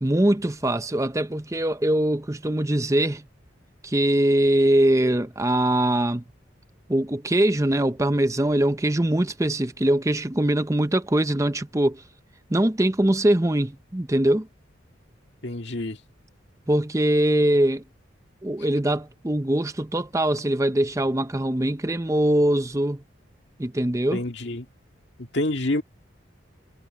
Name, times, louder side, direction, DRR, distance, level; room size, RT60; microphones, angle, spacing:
voice 1, 0.0-3.2 3.8-6.2 6.9-12.0 12.5-14.5 16.7-17.8 18.4-23.0 23.6-24.2, right 1 dB, 15° right, 0.7 m, -22 dB
voice 2, 15.4-16.0 24.1-24.7 25.2-25.8, left 1 dB, 60° left, 1.9 m, -27 dB
head